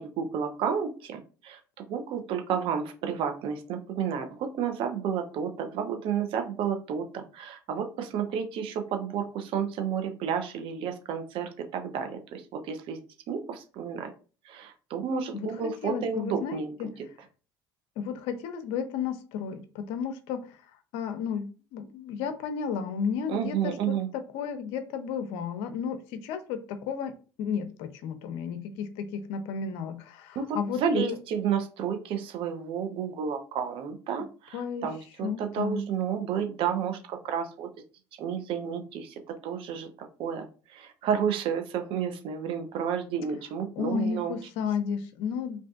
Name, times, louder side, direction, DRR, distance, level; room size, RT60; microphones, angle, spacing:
voice 1, 0.0-1.6 1.9-13.0 13.3-14.1 14.5-16.8 23.3-24.1 30.4-37.7 38.2-39.9 40.2-40.5 40.7-44.3, right 7 dB, 60° right, 5 dB, 0.6 m, -31 dB
voice 2, 15.3-16.9 18.0-20.5 20.9-27.1 27.4-31.2 34.2-34.3 34.5-34.9 35.2-35.8 43.8-45.6, left 6 dB, 75° left, 8 dB, 0.5 m, -33 dB
2.5 x 2.4 x 2.3 m, 0.36 s
hypercardioid pair, 75°, 10 cm